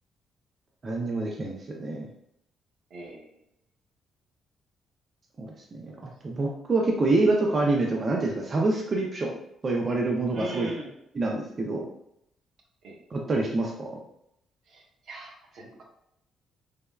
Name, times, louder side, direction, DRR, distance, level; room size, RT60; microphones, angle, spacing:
voice 1, 0.8-2.1 5.4-5.9 6.2-9.4 9.6-10.7 11.1-11.8 13.1-13.9, right 2 dB, 40° right, -1 dB, 0.4 m, -26 dB
voice 2, 2.9-3.3 10.3-10.9 12.8-13.0 14.7-15.8, right 1 dB, 75° right, 0 dB, 0.7 m, -39 dB
3.4 x 2.1 x 2.2 m, 0.76 s
cardioid pair, 90°, 0 cm